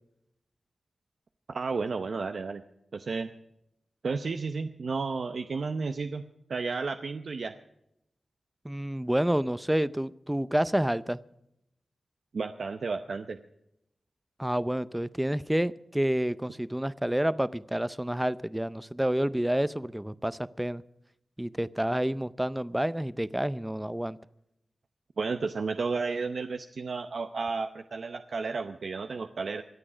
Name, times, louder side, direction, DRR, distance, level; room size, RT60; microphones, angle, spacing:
voice 1, 1.5-2.6 2.9-3.3 4.0-6.2 6.5-7.5 12.3-13.4 25.2-29.6, right 4 dB, 70° right, 7 dB, 0.7 m, -32 dB
voice 2, 8.6-11.2 14.4-20.8 21.4-24.2, right 1 dB, 10° right, 17 dB, 0.5 m, -29 dB
24.5 x 8.7 x 5.0 m, 0.81 s
wide cardioid pair, 85°, 0 cm